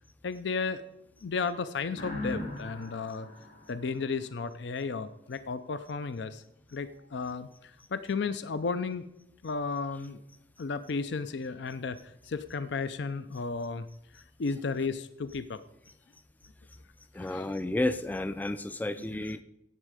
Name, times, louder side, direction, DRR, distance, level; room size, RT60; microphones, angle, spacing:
voice 1, 0.2-0.8 1.2-3.3 3.7-6.4 6.7-9.1 9.4-10.2 10.6-13.9 14.1-15.6 17.2-17.5 19.1-19.3, left 4 dB, 70° left, 13 dB, 0.5 m, -34 dB
sound 1, 1.9-4.6, left 1 dB, 85° left, 5.9 m, -40 dB
voice 2, 17.1-19.4, left 1 dB, 10° left, 12 dB, 0.3 m, -32 dB
16.5 x 7.3 x 4.9 m, 0.85 s
head